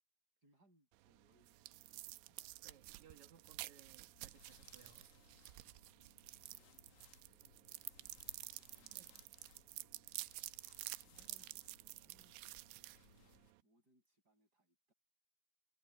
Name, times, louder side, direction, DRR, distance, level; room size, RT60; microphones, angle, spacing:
voice 1, 0.4-2.6 5.8-10.7 11.1-13.3 13.6-14.9, right 1 dB, 20° right, 8.5 m, -77 dB
sound 1, 0.9-13.6, right 18 dB, 85° right, 2.8 m, -51 dB
voice 2, 2.6-5.1 8.9-9.1 11.0-11.3, right 8 dB, 55° right, 2.8 m, -65 dB
sound 2, 4.1-13.5, left 7 dB, 55° left, 2.7 m, -68 dB
omnidirectional pair, 4.7 m